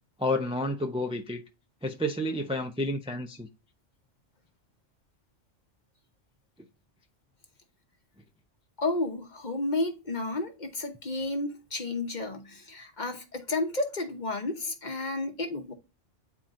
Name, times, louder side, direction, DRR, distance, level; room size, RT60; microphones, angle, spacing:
voice 1, 0.2-1.4 1.8-3.5, left 1 dB, 5° right, 0.6 m, -30 dB
voice 2, 8.8-15.7, left 2 dB, 40° left, 1.1 m, -32 dB
9.4 x 4.3 x 2.5 m
omnidirectional pair, 1.2 m